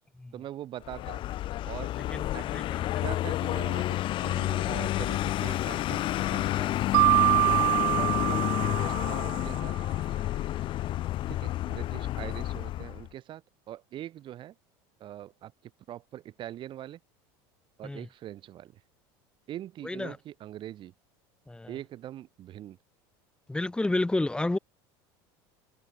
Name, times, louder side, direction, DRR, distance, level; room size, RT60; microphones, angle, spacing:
voice 1, 0.3-1.2 1.7-1.9 2.3-2.5 3.0-3.8 4.2-7.0 7.4-9.7 11.3-14.5 15.0-17.0 17.8-18.8 19.5-20.9 21.7-22.8, right 12 dB, 45° right, 6.4 m, -42 dB
Vehicle, 0.8-13.1, left 14 dB, 45° left, 1.3 m, -30 dB
voice 2, 2.1-3.1 17.8-18.1 19.8-20.2 21.5-21.8 23.5-24.6, left 2 dB, 10° left, 6.3 m, -31 dB
Mallet percussion, 6.9-9.7, right 40 dB or more, 70° right, 1.2 m, -25 dB
supercardioid pair, 120°, 12 cm